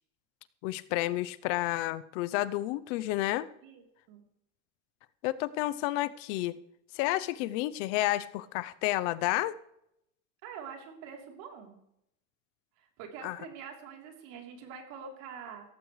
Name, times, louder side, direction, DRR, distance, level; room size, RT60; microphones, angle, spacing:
voice 1, 0.6-3.5 5.2-6.6 6.9-9.6 13.2-13.4, left 16 dB, 75° left, 15 dB, 0.8 m, -30 dB
voice 2, 3.6-4.2 10.4-11.8 12.8-15.7, right 6 dB, 70° right, 2 dB, 3.6 m, -45 dB
17.0 x 14.5 x 3.3 m, 0.78 s
cardioid pair, 155°, 36 cm